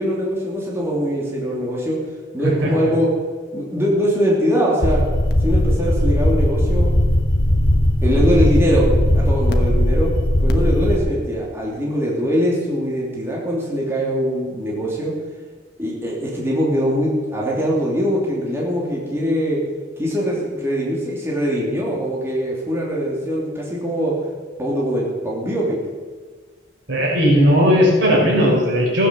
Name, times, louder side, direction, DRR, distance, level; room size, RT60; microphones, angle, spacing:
voice 1, 0.0-2.0 2.3-3.1 3.5-5.0 5.4-6.9 8.0-10.1 10.4-15.1 15.8-19.6 20.0-24.1 24.6-25.8, equal, 15° right, -4 dB, 3.0 m, -22 dB
voice 2, 2.4-2.9 26.9-29.1, equal, 80° right, -2 dB, 4.8 m, -16 dB
sound 1, 4.8-11.0, left 1 dB, 55° left, 1.3 m, -17 dB
15.5 x 9.1 x 7.0 m, 1.4 s
head